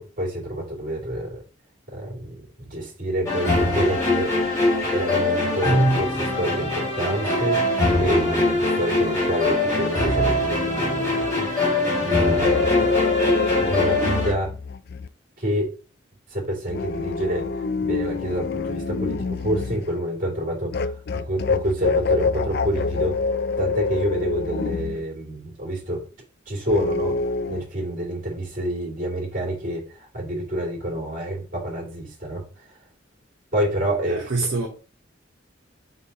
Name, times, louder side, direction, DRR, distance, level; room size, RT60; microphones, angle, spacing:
voice 1, 0.0-1.4 1.9-4.3 4.9-11.5 12.0-12.8 13.5-14.5 15.4-15.7 16.3-17.5 17.8-23.2 23.6-26.1 26.5-27.2 27.5-32.8 33.5-34.3, right 1 dB, 45° right, 2.7 m, -28 dB
sound 1, 3.3-14.3, left 1 dB, 15° left, 2.8 m, -22 dB
sound 2, 12.4-15.1 16.7-19.9 20.7-25.0 26.7-27.6, left 4 dB, 50° left, 0.4 m, -26 dB
voice 2, 34.1-34.7, right 3 dB, 60° right, 1.0 m, -25 dB
5.3 x 4.4 x 4.1 m
head